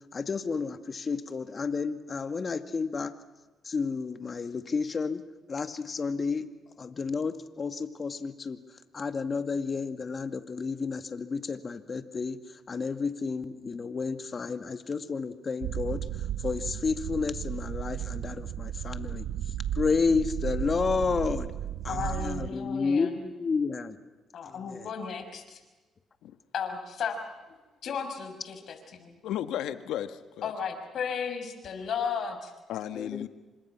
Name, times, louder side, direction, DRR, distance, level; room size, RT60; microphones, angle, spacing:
voice 1, 0.1-3.1 3.6-5.2 5.5-6.5 6.8-8.6 8.9-16.1 16.4-19.3 19.8-21.5 21.8-24.0 24.4-24.9 32.9-33.3, left 4 dB, 40° left, 2.1 m, -31 dB
sound 1, 15.6-22.5, right 11 dB, 85° right, 1.1 m, -34 dB
voice 2, 21.9-23.2 24.3-25.6 26.5-27.2 27.5-27.6 27.8-29.2 30.4-32.5, left 6 dB, 65° left, 6.1 m, -34 dB
voice 3, 29.2-30.5 32.7-33.3, left 11 dB, 85° left, 1.5 m, -34 dB
29.5 x 26.0 x 6.1 m
cardioid pair, 90°, 0 cm